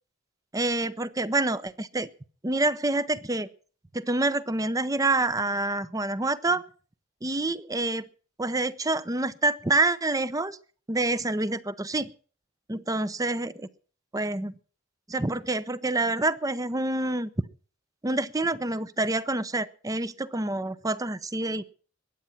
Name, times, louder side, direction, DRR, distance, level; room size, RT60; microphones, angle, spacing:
voice 1, 0.5-2.1 2.4-3.5 3.9-6.6 7.2-8.1 8.4-10.6 10.9-12.1 12.7-13.7 14.1-14.5 15.1-17.3 18.0-21.6, right 2 dB, 20° right, 16 dB, 0.7 m, -27 dB
21.5 x 9.0 x 5.8 m, 0.41 s
head